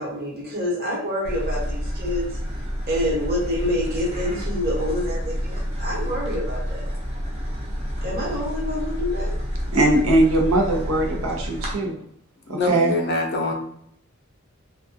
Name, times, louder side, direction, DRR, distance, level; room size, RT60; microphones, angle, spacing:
voice 1, 0.0-2.4 2.9-6.9 8.0-9.4, left 1 dB, 45° right, -4 dB, 1.0 m, -27 dB
sound 1, 1.2-11.7, equal, 30° right, 0.5 m, -29 dB
voice 2, 9.7-12.0 12.5-12.9, right 2 dB, 85° right, 0 dB, 0.6 m, -20 dB
voice 3, 12.5-13.5, left 2 dB, 50° left, 2 dB, 0.5 m, -24 dB
2.3 x 2.2 x 2.6 m, 0.67 s
head